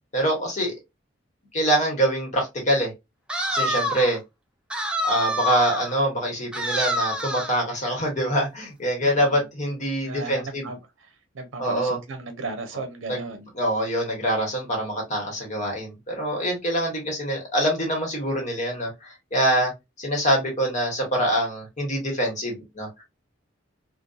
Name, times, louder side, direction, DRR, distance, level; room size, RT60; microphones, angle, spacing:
voice 1, 0.1-0.7 1.5-2.9 3.5-4.2 5.0-10.7 11.6-12.0 13.1-13.2 13.6-19.7 20.0-23.0, right 1 dB, 40° left, 1.1 m, -25 dB
sound 1, 3.3-4.2 4.7-5.9 6.5-7.6, equal, 5° right, 0.3 m, -27 dB
voice 2, 9.0-9.4 10.0-13.5, right 3 dB, 85° right, 0.6 m, -36 dB
2.6 x 2.1 x 2.2 m
head